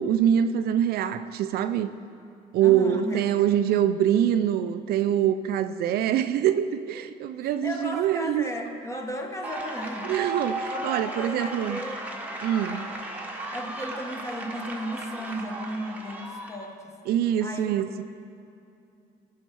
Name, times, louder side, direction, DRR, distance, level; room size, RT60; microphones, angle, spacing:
voice 1, 0.0-2.0 2.5-8.5 10.0-11.8 12.4-12.9 17.1-18.0, right 10 dB, 65° right, 10 dB, 0.4 m, -24 dB
voice 2, 2.6-3.5 7.4-10.1 10.7-12.2 12.6-13.0 13.5-16.9 17.4-17.7, equal, 15° left, 3 dB, 1.2 m, -35 dB
sound 1, 9.4-16.6, right 2 dB, 10° right, 1.1 m, -35 dB
16.0 x 5.7 x 4.6 m, 2.6 s
cardioid pair, 110°, 17 cm